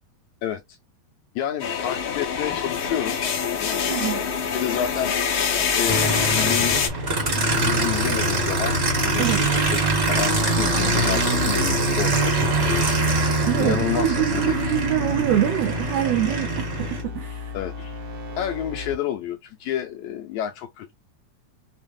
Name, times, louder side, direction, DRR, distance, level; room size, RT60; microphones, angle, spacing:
voice 1, 0.4-0.8 1.4-3.3 3.5-5.1 5.7-6.8 7.3-8.7 9.0-9.8 10.1-14.6 17.5-18.0 18.4-20.9, left 10 dB, 75° left, 1.9 m, -30 dB
sound 1, 1.6-6.9, left 7 dB, 60° left, 1.5 m, -24 dB
voice 2, 3.8-4.3 9.2-9.4 13.5-17.5, right 12 dB, 85° right, 1.4 m, -25 dB
sound 2, 5.6-19.0, left 4 dB, 70° right, 0.9 m, -36 dB
Aircraft, 5.9-17.0, right 2 dB, 45° right, 0.8 m, -23 dB
5.6 x 2.5 x 3.4 m
omnidirectional pair, 3.6 m